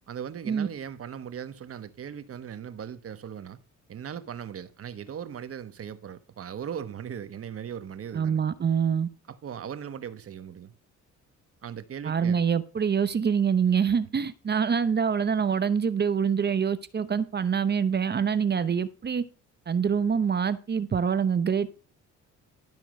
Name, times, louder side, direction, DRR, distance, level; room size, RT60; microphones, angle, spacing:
voice 1, 0.1-3.6 3.9-8.4 9.3-10.7 11.6-12.4, right 8 dB, 50° right, 1.1 m, -38 dB
voice 2, 8.1-9.1 12.0-19.2 19.7-21.8, right 7 dB, 35° right, 0.8 m, -25 dB
12.5 x 4.5 x 6.4 m
cardioid pair, 90°, 30 cm